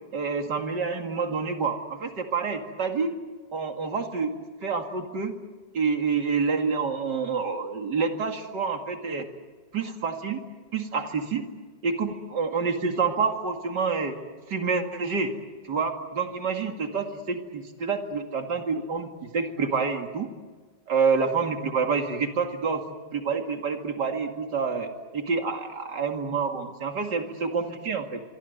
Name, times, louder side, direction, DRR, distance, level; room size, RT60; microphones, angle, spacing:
voice 1, 0.1-3.1 3.5-5.3 5.7-9.3 9.7-10.4 10.7-11.5 11.8-14.1 14.5-15.3 15.6-20.3 20.9-22.8 23.1-28.2, right 5 dB, 80° right, 4 dB, 2.9 m, -28 dB
25.0 x 24.5 x 8.0 m, 1.3 s
omnidirectional pair, 1.8 m